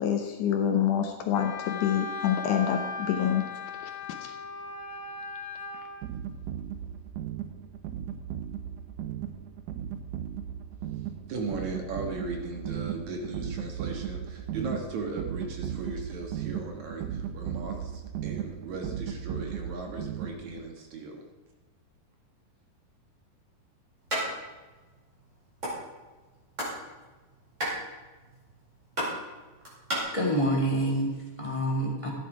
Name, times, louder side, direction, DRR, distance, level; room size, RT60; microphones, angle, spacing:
voice 1, 0.0-3.4 4.3-4.4, left 9 dB, 70° left, 5 dB, 2.1 m, -26 dB
Wind instrument woodwind instrument, 1.3-6.0, left 4 dB, 40° left, 3.4 m, -37 dB
sound 1, 6.0-20.7, right 9 dB, 75° right, 2.2 m, -36 dB
voice 2, 11.3-21.2, right 3 dB, 60° right, 2 dB, 2.5 m, -37 dB
sound 2, 24.1-24.2 24.6-24.7 24.9-25.7 26.2-26.8 27.0-30.0, equal, 20° right, 5.4 m, -32 dB
voice 3, 30.1-32.1, right 1 dB, 10° left, -1 dB, 2.1 m, -27 dB
14.0 x 10.0 x 4.9 m, 1.2 s
omnidirectional pair, 4.1 m